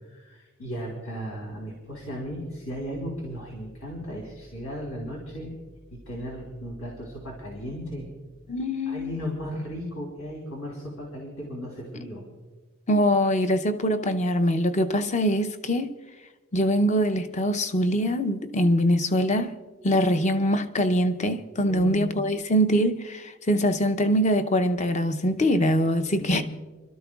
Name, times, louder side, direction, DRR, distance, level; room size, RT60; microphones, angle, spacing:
voice 1, 0.1-5.5 5.9-8.1 8.9-12.2 21.7-22.0 26.2-26.4, equal, 75° left, 3.7 m, -36 dB
voice 2, 8.5-9.1 12.9-15.9 16.5-19.5 19.8-26.4, equal, 35° left, 0.7 m, -23 dB
30.0 x 13.0 x 2.4 m
head